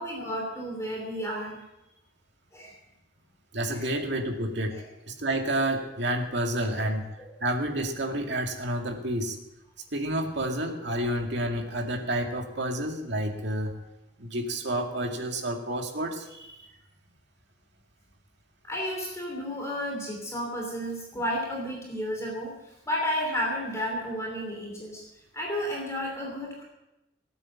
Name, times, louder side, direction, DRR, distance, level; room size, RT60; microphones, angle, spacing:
voice 1, 0.0-1.6 2.5-2.8 3.7-4.0 4.7-4.8 6.6-6.9 7.3-7.4 18.6-25.0 25.3-26.6, equal, 15° left, -1 dB, 3.2 m, -32 dB
voice 2, 3.5-4.7 5.1-7.0 7.4-9.4 9.9-13.7 14.2-16.7, right 1 dB, 65° right, 2 dB, 2.3 m, -30 dB
18.0 x 9.0 x 7.3 m, 0.93 s
head